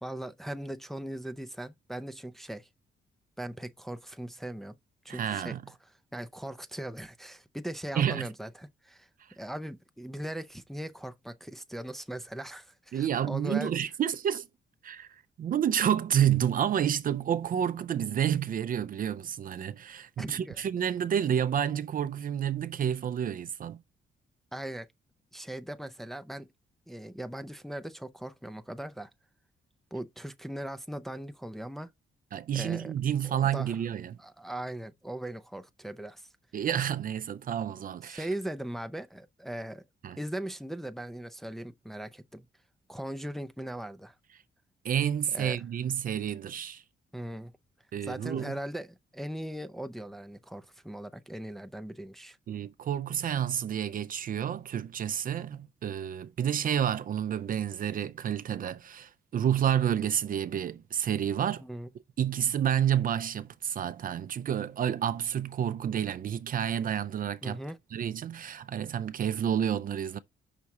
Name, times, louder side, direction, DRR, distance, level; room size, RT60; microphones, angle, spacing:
voice 1, 0.0-2.7 3.4-4.7 5.0-5.7 6.1-13.7 20.2-20.6 24.5-24.9 25.3-26.5 26.9-29.1 29.9-31.9 32.5-32.9 33.2-33.7 34.2-36.3 38.1-39.8 40.2-42.4 42.9-44.1 45.3-45.6 47.1-47.5 48.0-52.4 61.6-61.9 67.4-67.8, right 1 dB, ahead, 0.5 m, -39 dB
voice 2, 5.1-5.6 7.9-8.3 9.2-9.4 12.9-14.5 14.8-23.8 32.3-34.2 36.5-38.3 40.0-40.2 44.8-46.8 47.9-48.5 52.5-61.6 62.2-67.6 67.9-70.2, right 9 dB, 50° right, 0.5 m, -29 dB
5.9 x 4.1 x 4.7 m
wide cardioid pair, 155°, 19 cm